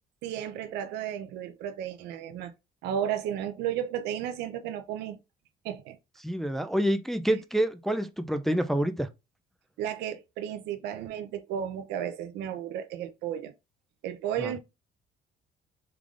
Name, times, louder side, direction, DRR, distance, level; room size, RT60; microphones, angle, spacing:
voice 1, 0.2-2.5 2.8-5.2 5.6-6.0 9.8-13.5 14.0-14.6, right 9 dB, 85° right, 0.6 m, -33 dB
voice 2, 6.2-9.1 14.4-14.5, right 1 dB, ahead, 0.3 m, -27 dB
3.6 x 3.3 x 2.4 m
cardioid pair, 110°, 17 cm